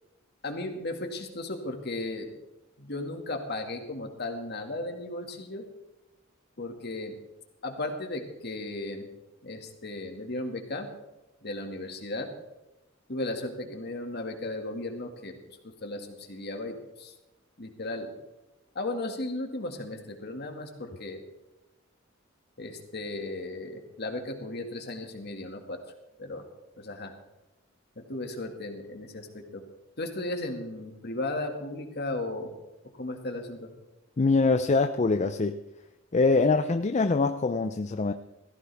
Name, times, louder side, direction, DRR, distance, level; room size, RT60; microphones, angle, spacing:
voice 1, 0.4-2.3 2.8-5.6 6.6-7.2 7.6-9.1 9.4-10.9 11.4-12.3 13.1-15.3 15.6-17.1 17.6-18.1 18.8-21.2 22.6-25.8 26.2-26.4 26.8-27.1 28.0-29.6 30.0-32.5 33.0-33.7, left 2 dB, 55° left, 4 dB, 2.1 m, -35 dB
voice 2, 34.2-35.6 36.1-38.1, left 3 dB, 35° left, 9 dB, 0.5 m, -24 dB
17.5 x 14.5 x 3.5 m, 1.0 s
head